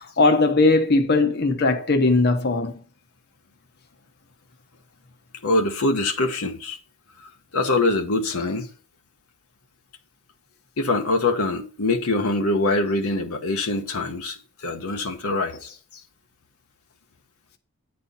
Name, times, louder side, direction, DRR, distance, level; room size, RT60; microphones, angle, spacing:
voice 1, 0.0-2.8, left 3 dB, 50° left, 1.0 m, -19 dB
voice 2, 5.4-6.8 7.5-8.7 10.8-15.7, left 2 dB, 80° left, 1.1 m, -24 dB
9.7 x 4.4 x 5.4 m
head